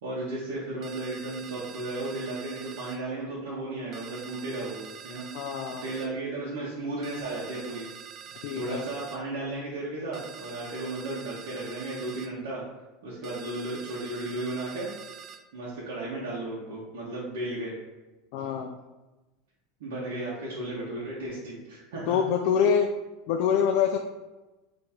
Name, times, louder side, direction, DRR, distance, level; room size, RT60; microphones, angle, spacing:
voice 1, 0.0-5.3 5.8-7.9 8.5-12.6 13.0-14.9 15.5-17.7 19.8-22.2, right 2 dB, 90° right, -8 dB, 1.2 m, -34 dB
sound 1, 0.8-3.0 3.9-6.1 7.0-9.2 10.1-12.3 13.2-15.4, right 8 dB, 40° right, 0.3 m, -45 dB
voice 2, 5.3-5.8 8.4-8.8 18.3-18.7 22.1-22.9 23.3-24.0, left 7 dB, 65° left, 4 dB, 0.3 m, -25 dB
3.6 x 3.0 x 4.3 m, 1.1 s
supercardioid pair, 130°, 0 cm